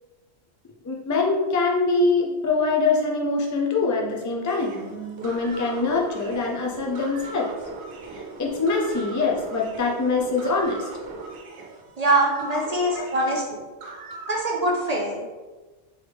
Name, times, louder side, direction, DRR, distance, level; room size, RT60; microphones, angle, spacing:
voice 1, 0.8-7.5 8.4-10.9 12.5-12.6 13.0-13.3, left 3 dB, 25° left, -1 dB, 0.4 m, -24 dB
sound 1, 4.5-14.4, right 3 dB, 75° right, 0.9 m, -39 dB
voice 2, 12.0-13.7 14.3-15.3, right 1 dB, 50° right, -2 dB, 0.5 m, -23 dB
4.0 x 3.1 x 3.3 m, 1.2 s
omnidirectional pair, 1.2 m